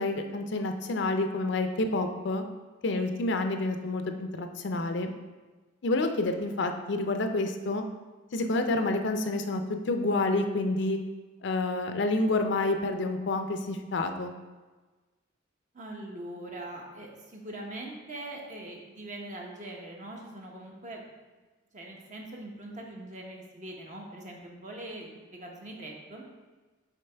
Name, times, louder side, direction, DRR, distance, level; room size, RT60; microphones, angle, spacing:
voice 1, 0.0-2.4 2.8-5.1 5.8-7.8 8.3-11.0 11.4-14.3, left 2 dB, 60° left, 6 dB, 0.5 m, -28 dB
voice 2, 15.7-21.0 21.7-26.2, right 1 dB, 40° right, 0 dB, 1.0 m, -42 dB
6.6 x 4.8 x 3.4 m, 1.3 s
head